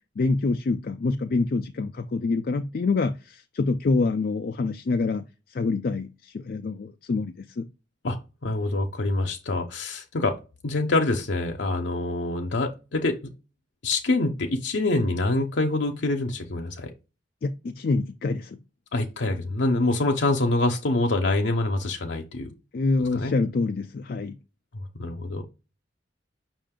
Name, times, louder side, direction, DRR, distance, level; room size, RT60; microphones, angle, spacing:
voice 1, 0.2-5.2 5.5-7.6 17.4-18.6 22.7-24.4, left 3 dB, 50° left, 0.4 m, -26 dB
voice 2, 8.0-10.4 10.6-13.2 13.8-16.9 18.9-22.5 23.1-23.3 25.0-25.4, left 2 dB, 80° left, 0.7 m, -25 dB
5.6 x 2.5 x 3.6 m
head